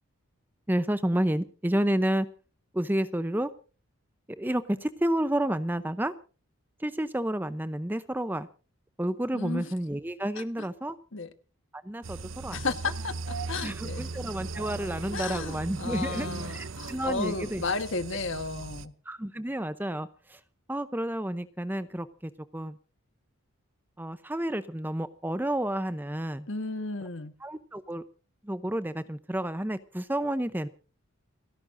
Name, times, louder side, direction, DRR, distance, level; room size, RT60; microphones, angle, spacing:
voice 1, 0.7-2.3 2.7-3.5 4.4-6.1 6.8-8.5 9.0-11.0 11.7-12.6 13.6-17.6 19.1-20.4 20.7-22.8 24.0-26.5 27.4-28.0 28.4-30.7, right 1 dB, 10° right, 12 dB, 0.6 m, -30 dB
voice 2, 9.3-9.7 10.3-10.7 11.1-11.3 12.5-13.1 13.5-14.1 15.1-18.9 26.5-27.3, left 3 dB, 60° left, 10 dB, 1.4 m, -33 dB
sound 1, 12.0-18.9, right 3 dB, 65° right, 0.7 m, -38 dB
30.0 x 11.5 x 2.6 m, 0.36 s
head